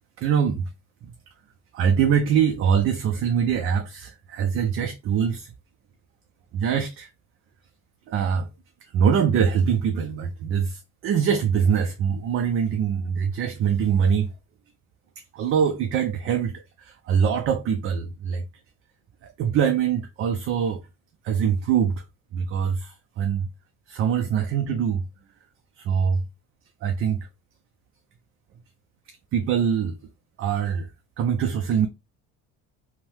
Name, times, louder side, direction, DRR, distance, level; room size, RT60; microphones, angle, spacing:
voice 1, 0.2-0.7 1.7-5.5 6.5-7.1 8.1-8.5 8.8-14.3 15.3-18.4 19.2-20.8 21.2-22.0 22.3-23.5 23.9-25.0 25.8-26.2 26.8-27.3 29.3-30.0 30.4-30.9 31.2-31.9, right 7 dB, 45° right, 0.4 m, -23 dB
2.7 x 2.1 x 3.1 m
cardioid pair, 120°, 31 cm